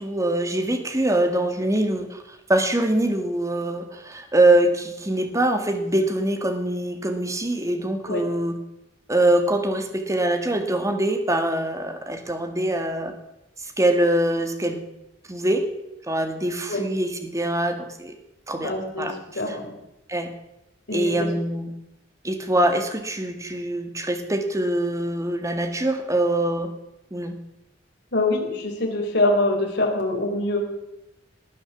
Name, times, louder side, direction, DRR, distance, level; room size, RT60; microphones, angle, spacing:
voice 1, 0.0-2.2 2.5-8.6 9.1-13.1 13.8-14.8 15.3-15.7 16.1-18.1 18.5-19.1 19.5-19.6 20.1-20.3 20.9-21.7 22.2-26.7 27.1-27.4, right 1 dB, 15° right, 7 dB, 1.8 m, -23 dB
voice 2, 18.6-19.1 19.3-19.7 20.9-21.3 28.1-30.6, left 2 dB, 65° left, 0 dB, 4.0 m, -24 dB
19.0 x 9.8 x 7.1 m, 0.89 s
head